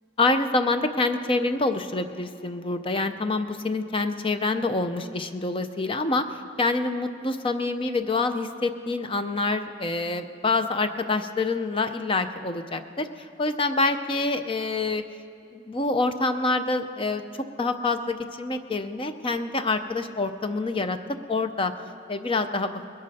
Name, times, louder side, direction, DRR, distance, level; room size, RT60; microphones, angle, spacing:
voice 1, 0.2-15.0 15.5-21.0 21.3-21.7 22.1-22.8, left 3 dB, 25° left, 9 dB, 0.5 m, -26 dB
20.5 x 11.5 x 4.2 m, 2.6 s
head